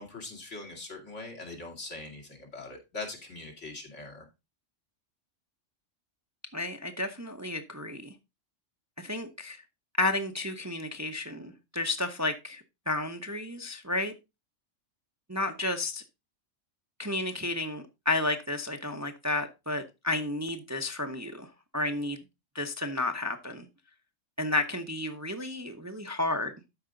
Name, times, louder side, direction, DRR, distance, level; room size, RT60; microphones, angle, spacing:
voice 1, 0.0-4.3, left 3 dB, 70° left, 2.5 m, -42 dB
voice 2, 6.5-8.1 9.0-9.6 10.0-14.1 15.3-16.0 17.0-21.5 21.7-22.2 22.5-23.6 24.4-26.5, left 2 dB, 15° right, 0.7 m, -32 dB
12.5 x 5.0 x 3.8 m
omnidirectional pair, 1.3 m